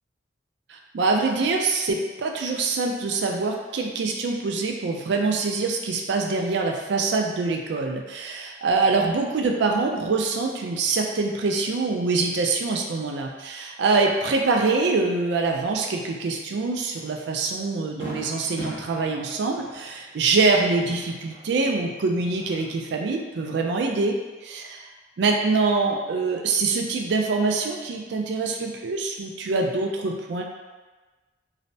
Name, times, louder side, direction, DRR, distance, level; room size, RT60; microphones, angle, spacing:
voice 1, 0.7-24.2 24.5-24.6 25.2-30.4, right 3 dB, 65° right, 1 dB, 0.3 m, -24 dB
Fireworks, 16.9-17.1 17.5-17.6 18.0-21.8 22.1-22.9, equal, 30° left, 1.1 m, -40 dB
3.1 x 2.0 x 2.6 m, 1.3 s
head